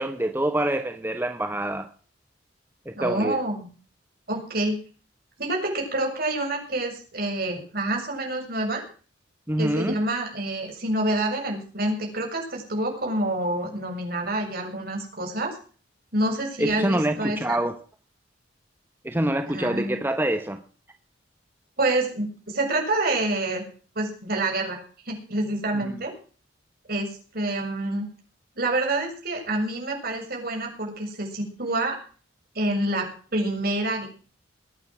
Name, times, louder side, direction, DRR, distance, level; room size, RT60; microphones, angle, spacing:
voice 1, 0.0-1.9 2.9-3.4 9.5-10.0 16.6-17.8 19.0-20.6 25.8-25.9, right 1 dB, 10° right, 1.1 m, -26 dB
voice 2, 3.0-3.7 4.3-4.8 5.4-8.8 9.6-15.6 16.1-17.6 19.5-20.0 21.8-23.6 24.0-24.8 25.1-26.1 26.9-27.1 27.3-28.1 28.6-32.0 32.6-34.1, right 2 dB, 55° right, 6.9 m, -27 dB
21.0 x 9.5 x 6.3 m
head